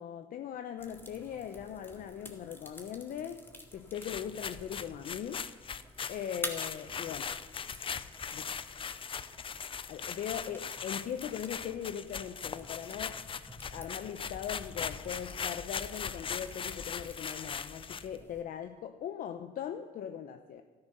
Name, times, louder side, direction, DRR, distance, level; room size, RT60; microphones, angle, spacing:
voice 1, 0.0-5.5 6.1-7.4 8.3-8.6 9.9-13.2 13.7-20.6, left 9 dB, 55° left, 8 dB, 0.8 m, -40 dB
sound 1, 0.8-18.4, left 1 dB, 10° left, 2.1 m, -50 dB
sound 2, 3.9-18.2, left 6 dB, 30° left, 0.6 m, -40 dB
14.0 x 12.5 x 6.7 m, 1.5 s
cardioid pair, 110°, 17 cm